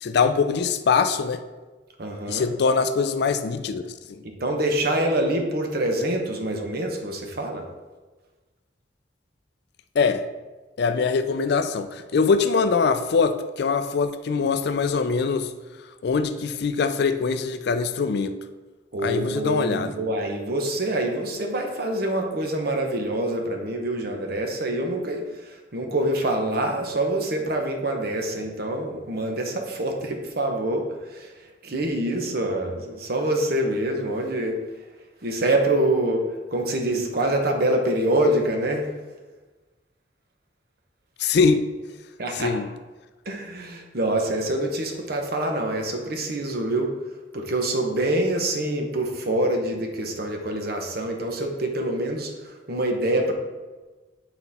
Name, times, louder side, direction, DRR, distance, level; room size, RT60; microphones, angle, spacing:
voice 1, 0.0-1.4 2.3-4.2 10.0-10.2 10.8-15.5 16.0-18.3 19.0-19.9 41.2-41.6 42.3-42.7, left 5 dB, 60° left, 9 dB, 0.4 m, -23 dB
voice 2, 2.0-2.5 4.2-7.7 18.9-34.8 35.2-36.2 36.5-38.9 42.2-42.7 43.2-46.9 47.3-53.3, right 1 dB, 55° right, 3 dB, 1.0 m, -26 dB
9.0 x 4.0 x 4.2 m, 1.2 s
head